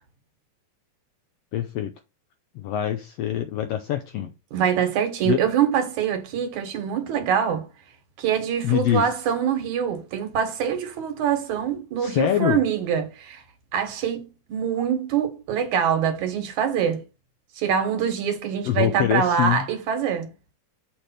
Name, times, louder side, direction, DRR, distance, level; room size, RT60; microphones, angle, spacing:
voice 1, 1.5-1.9 2.5-4.3 5.2-5.4 8.6-9.1 12.0-12.6 18.6-19.7, left 11 dB, 80° left, 1.4 m, -24 dB
voice 2, 4.5-7.7 8.2-13.4 13.7-17.0 17.6-20.3, right 8 dB, 75° right, 2.7 m, -24 dB
6.6 x 3.3 x 5.7 m
omnidirectional pair, 3.5 m